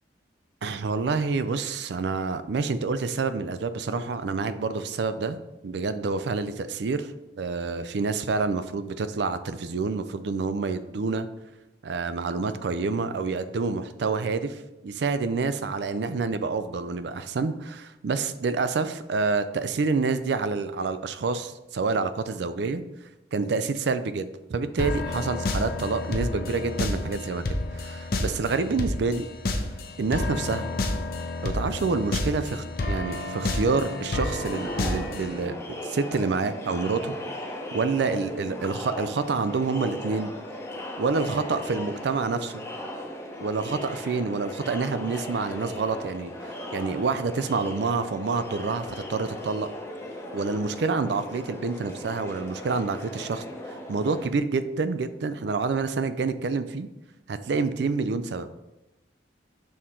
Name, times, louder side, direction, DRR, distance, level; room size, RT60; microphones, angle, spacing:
voice 1, 0.6-5.4 5.6-7.1 7.4-11.3 11.8-14.6 14.8-22.8 23.3-29.3 30.0-30.7 31.4-35.6 35.8-37.2 37.7-40.3 41.0-42.6 43.4-49.7 50.3-56.9 57.3-58.5, right 4 dB, 65° right, 12 dB, 0.4 m, -28 dB
sound 1, 24.8-35.5, left 2 dB, 50° left, 0.6 m, -30 dB
Crowd, 34.3-54.3, left 1 dB, 15° left, 0.8 m, -37 dB
6.4 x 3.8 x 4.3 m, 0.98 s
head